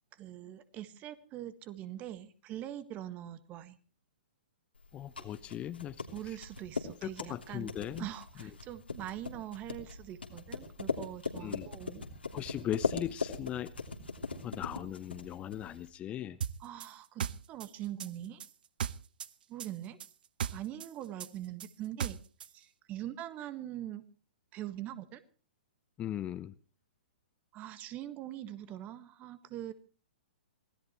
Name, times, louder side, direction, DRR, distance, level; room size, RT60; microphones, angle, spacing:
voice 1, 0.1-3.8 6.1-7.7 8.0-12.0 16.6-18.4 19.5-20.0 20.4-22.2 22.5-24.0 24.5-25.2 27.5-29.7, right 12 dB, 25° right, 13 dB, 1.6 m, -43 dB
sound 1, 4.8-15.9, left 4 dB, 85° left, 3.1 m, -39 dB
voice 2, 4.9-6.4 7.0-8.1 8.4-8.5 11.4-11.7 12.3-13.7 14.4-16.4 26.0-26.5, left 11 dB, 20° left, 14 dB, 0.7 m, -39 dB
sound 2, 16.4-19.3 19.6-22.5, right 8 dB, 60° right, 0.9 m, -37 dB
25.0 x 17.0 x 3.1 m, 0.37 s
figure-of-eight pair, 120°, 5 cm